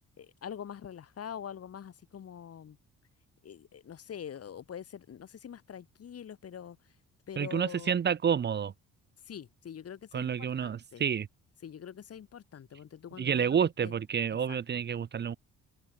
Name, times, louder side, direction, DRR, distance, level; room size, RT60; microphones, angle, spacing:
voice 1, 0.2-2.8 3.4-7.0 7.3-8.0 9.2-11.0 11.6-13.9 14.5-14.6, left 8 dB, 55° left, 2.6 m, -44 dB
voice 2, 7.4-8.7 10.1-11.3 13.2-15.4, right 7 dB, 35° right, 0.7 m, -29 dB
cardioid pair, 90°, 30 cm